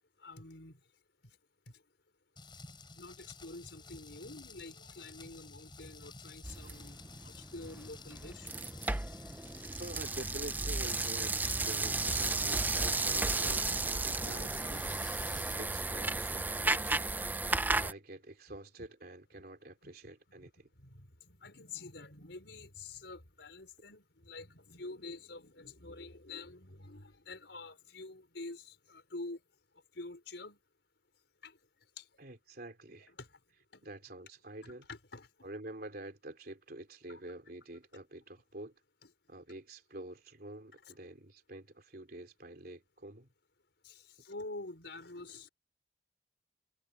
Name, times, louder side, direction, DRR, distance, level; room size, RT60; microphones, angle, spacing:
voice 1, 0.2-0.8 3.0-7.0 7.2-8.5 17.7-17.9 18.8-18.9 19.8-19.9 20.4-20.5 20.8-29.4 29.9-30.6 31.4-31.5 32.0-32.1 33.2-33.3 33.7-33.9 34.6-35.3 37.1-37.2 39.0-39.1 43.8-45.5, left 3 dB, 75° left, 4.8 m, -47 dB
Rain, 2.4-15.6, left 3 dB, 25° left, 6.4 m, -52 dB
sound 1, 6.4-17.9, right 3 dB, 10° right, 0.4 m, -34 dB
voice 2, 9.8-15.3 15.5-17.1 17.4-20.7 32.2-33.1 33.8-34.9 35.4-38.7 39.3-43.3, right 1 dB, 55° right, 3.5 m, -47 dB
head